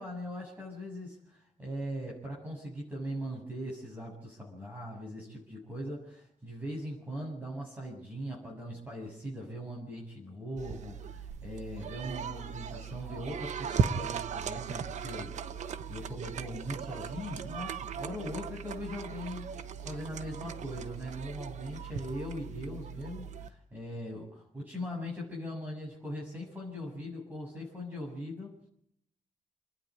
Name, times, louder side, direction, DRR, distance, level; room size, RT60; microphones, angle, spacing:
voice 1, 0.0-15.5 15.9-19.6 19.8-24.3 24.7-28.7, equal, 15° right, -3 dB, 7.3 m, -40 dB
sound 1, 10.6-23.5, right 7 dB, 65° right, 1.1 m, -37 dB
29.0 x 10.5 x 9.7 m, 0.69 s
wide cardioid pair, 140°, 13 cm